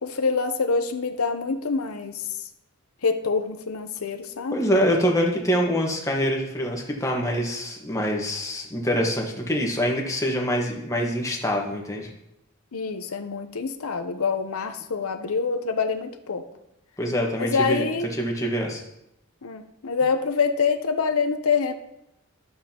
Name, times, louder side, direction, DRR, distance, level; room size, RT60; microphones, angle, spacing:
voice 1, 0.0-2.3 3.0-4.6 12.7-16.5 17.4-18.1 19.4-21.7, left 5 dB, 85° left, 7 dB, 0.8 m, -26 dB
voice 2, 4.5-12.1 17.0-17.8 18.2-18.8, equal, 15° left, -1 dB, 1.3 m, -25 dB
12.0 x 7.5 x 2.9 m, 0.83 s
head